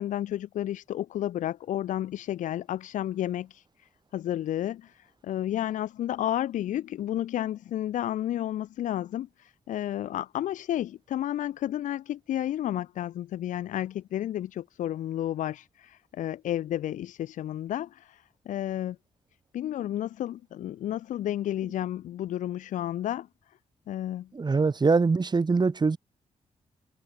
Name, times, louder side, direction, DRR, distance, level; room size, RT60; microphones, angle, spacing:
voice 1, 0.0-3.6 4.1-4.9 5.2-19.0 19.5-23.3 23.9-24.3, left 12 dB, 90° left, 1.9 m, -31 dB
voice 2, 24.3-26.0, right 4 dB, 35° right, 1.9 m, -23 dB
cardioid pair, 70°, 13 cm